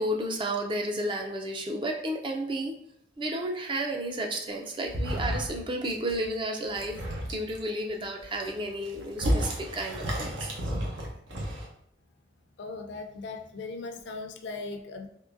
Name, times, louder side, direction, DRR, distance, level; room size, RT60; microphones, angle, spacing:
voice 1, 0.0-2.8 3.2-7.0 7.3-10.5, right 1 dB, 25° right, 2 dB, 0.4 m, -32 dB
sound 1, 4.8-5.6 5.8-6.3 6.6-7.6 8.2-11.7, equal, 80° right, 0.8 m, -32 dB
voice 2, 12.6-15.1, left 3 dB, 65° left, 5 dB, 0.4 m, -38 dB
3.6 x 3.1 x 2.5 m, 0.73 s
head